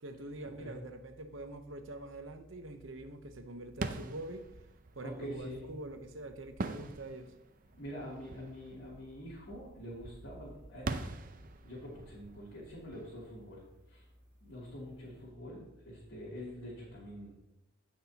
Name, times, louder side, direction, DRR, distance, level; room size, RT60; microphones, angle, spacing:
voice 1, 0.0-4.5 4.9-7.3, right 2 dB, 70° right, 7 dB, 0.9 m, -45 dB
sound 1, 3.7-14.3, right 3 dB, 40° right, 0.6 m, -44 dB
voice 2, 5.0-5.7 7.8-11.0 11.6-13.6 13.9-14.0 14.4-17.3, equal, 65° left, -9 dB, 3.0 m, -45 dB
16.5 x 6.0 x 2.9 m, 0.89 s
head